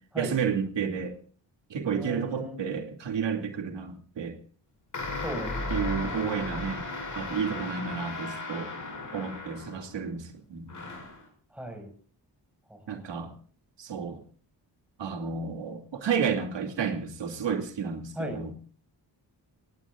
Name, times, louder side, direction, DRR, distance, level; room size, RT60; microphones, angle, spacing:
voice 1, 0.1-1.1 1.7-4.4 5.7-6.8 7.2-8.7 9.1-10.7 12.9-13.3 13.8-14.2 15.0-18.5, right 6 dB, 80° right, 5 dB, 2.6 m, -31 dB
voice 2, 1.9-2.6 5.2-6.2 11.5-11.9 12.7-13.0 18.2-18.4, equal, 5° right, 5 dB, 5.6 m, -37 dB
sound 1, 4.9-10.0 10.7-11.2, left 2 dB, 45° left, 6.6 m, -35 dB
26.0 x 18.5 x 2.5 m, 0.43 s
wide cardioid pair, 130°, 43 cm